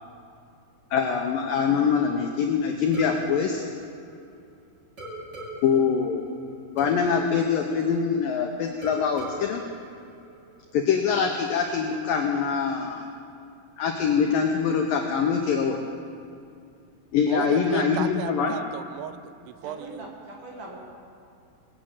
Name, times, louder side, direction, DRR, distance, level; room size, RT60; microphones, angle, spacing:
voice 1, 0.9-3.6 5.6-6.2 6.8-9.6 10.7-13.1 13.8-15.8 17.1-18.6, left 6 dB, 90° left, 2 dB, 1.9 m, -24 dB
sound 1, 2.9-4.5 5.0-8.4 8.8-10.8, right 1 dB, 30° right, 2.6 m, -42 dB
voice 2, 17.3-20.1, right 12 dB, 85° right, 13 dB, 2.9 m, -34 dB
voice 3, 19.6-20.8, right 1 dB, 55° right, -3 dB, 3.0 m, -41 dB
20.5 x 7.4 x 8.9 m, 2.5 s
omnidirectional pair, 5.3 m